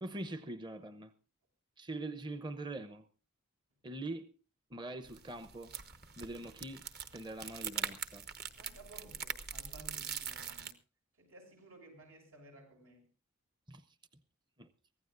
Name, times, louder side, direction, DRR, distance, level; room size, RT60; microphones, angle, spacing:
voice 1, 0.0-1.1 1.8-3.1 3.8-4.3 4.7-5.7 6.2-6.8 7.1-8.2 13.7-13.8 14.6-14.7, right 2 dB, 20° right, 0.8 m, -43 dB
sound 1, 5.0-10.7, right 7 dB, 50° right, 1.3 m, -43 dB
voice 2, 8.6-10.8 11.2-13.1, right 2 dB, 85° right, 7.1 m, -56 dB
24.0 x 16.0 x 2.6 m
head